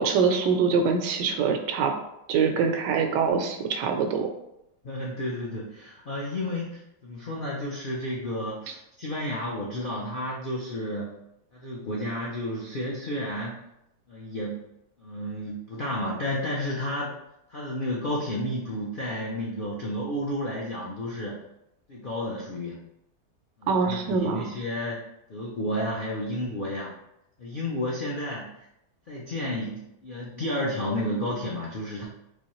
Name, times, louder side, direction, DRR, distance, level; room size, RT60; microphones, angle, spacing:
voice 1, 0.0-1.9 2.3-4.3 23.7-24.5, right 5 dB, 90° right, 5 dB, 1.2 m, -24 dB
voice 2, 4.8-11.1 11.5-13.6 14.1-14.6 15.0-17.1 17.5-21.4 21.9-22.8 23.6-26.9 27.4-28.7 29.1-32.1, left 1 dB, 85° left, -4 dB, 0.4 m, -31 dB
4.0 x 3.1 x 3.0 m, 0.83 s
omnidirectional pair, 1.8 m